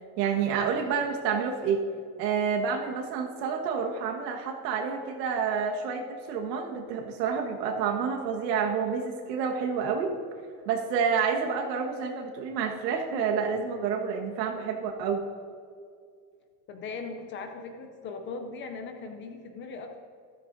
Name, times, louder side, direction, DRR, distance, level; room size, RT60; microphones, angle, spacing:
voice 1, 0.2-1.8 2.2-10.1 10.6-15.2, right 6 dB, 80° right, 3 dB, 1.6 m, -29 dB
voice 2, 16.7-20.0, left 4 dB, 25° left, 5 dB, 0.5 m, -39 dB
13.5 x 13.0 x 2.7 m, 2.2 s
supercardioid pair, 160°, 49 cm